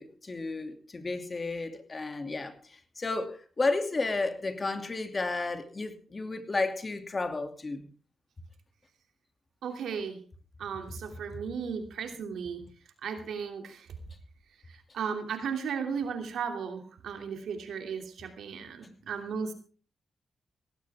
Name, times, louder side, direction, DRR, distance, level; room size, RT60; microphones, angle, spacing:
voice 1, 0.0-2.5 3.0-7.8, left 3 dB, 35° left, 2.6 m, -32 dB
voice 2, 9.6-10.2 10.6-12.6 13.0-13.9 14.9-19.5, right 6 dB, 80° right, 2.9 m, -35 dB
17.5 x 16.0 x 3.6 m
cardioid pair, 65°, 0 cm